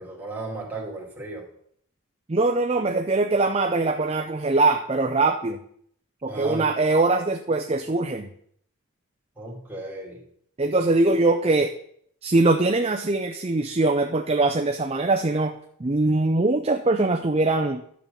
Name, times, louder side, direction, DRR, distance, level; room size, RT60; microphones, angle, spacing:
voice 1, 0.0-1.5 6.3-6.7 9.4-10.2, right 3 dB, 10° right, -4 dB, 2.4 m, -35 dB
voice 2, 2.3-5.6 6.2-8.3 10.6-11.7 12.2-15.5 15.8-17.8, right 2 dB, 25° right, 5 dB, 0.5 m, -22 dB
11.5 x 7.4 x 5.4 m, 0.66 s
head